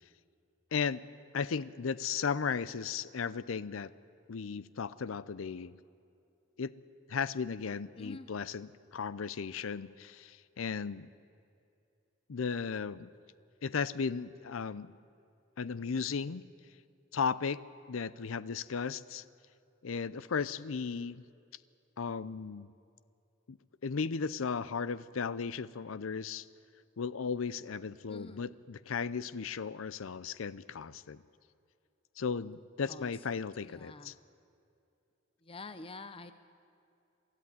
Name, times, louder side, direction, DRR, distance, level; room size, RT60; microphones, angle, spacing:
voice 1, 0.7-1.0 1.3-3.9 4.3-5.8 6.6-6.7 7.1-11.1 12.3-13.1 13.6-14.9 15.6-16.4 17.1-17.6 17.9-19.2 19.8-21.2 22.0-22.7 23.5-23.6 23.8-26.5 27.0-31.2 32.2-34.1, left 5 dB, 80° left, 18 dB, 0.6 m, -35 dB
voice 2, 8.0-8.3 28.1-28.4 32.9-33.1 33.6-34.1 35.5-36.3, left 3 dB, 30° left, 11 dB, 0.7 m, -47 dB
23.5 x 13.5 x 9.5 m, 2.6 s
head